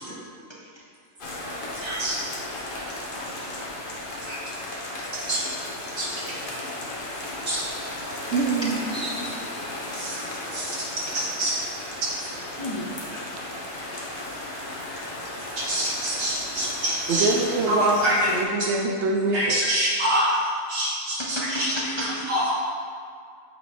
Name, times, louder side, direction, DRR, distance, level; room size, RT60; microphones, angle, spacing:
voice 1, 0.5-0.8 3.1-3.5 8.6-8.8 11.1-11.2 12.6-13.0 17.6-17.7 21.2-22.2, equal, 30° left, -4 dB, 0.6 m, -33 dB
sound 1, 1.2-18.4, left 1 dB, 45° left, 1.1 m, -35 dB
voice 2, 1.7-2.2 4.2-4.4 5.3-5.4 6.0-6.1 7.5-7.6 8.9-9.3 9.9-10.2 10.5-11.5 12.0-12.3 15.6-17.3 17.6-18.3 18.6-18.7 19.3-21.7 22.0-22.5, right 1 dB, 90° right, -7 dB, 2.2 m, -26 dB
voice 3, 8.3-8.8 17.1-19.5, right 3 dB, 65° right, 2 dB, 0.9 m, -24 dB
8.1 x 4.0 x 5.0 m, 2.2 s
omnidirectional pair, 1.3 m